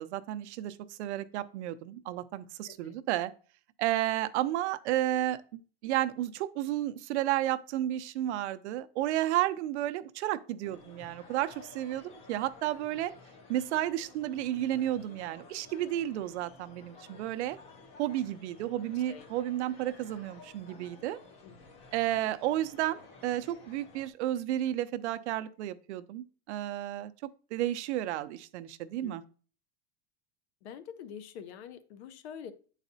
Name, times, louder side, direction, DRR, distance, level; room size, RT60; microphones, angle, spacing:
voice 1, 0.0-3.3 3.8-13.1 13.5-17.6 18.0-21.2 21.9-27.1 27.5-29.2, right 13 dB, 80° right, 12 dB, 0.6 m, -32 dB
sound 1, 10.6-24.1, left 4 dB, 20° left, 0.4 m, -54 dB
voice 2, 18.9-19.3 21.4-21.5 29.0-29.1 30.6-32.5, left 8 dB, 75° left, 12 dB, 0.7 m, -46 dB
9.0 x 4.1 x 2.7 m, 0.40 s
supercardioid pair, 170°, 33 cm